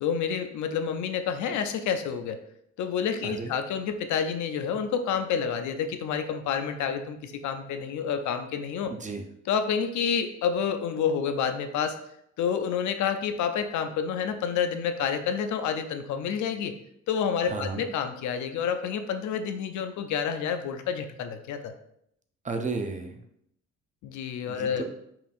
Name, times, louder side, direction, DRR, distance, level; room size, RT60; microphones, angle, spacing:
voice 1, 0.0-2.4 2.8-8.9 9.5-12.0 12.4-16.7 17.1-21.7 24.0-24.8, left 7 dB, 70° left, 8 dB, 0.5 m, -29 dB
voice 2, 8.9-9.2 17.4-17.8 22.4-23.2 24.5-24.8, right 4 dB, 25° right, 5 dB, 0.5 m, -33 dB
5.5 x 2.5 x 2.4 m, 0.74 s
cardioid pair, 90°, 30 cm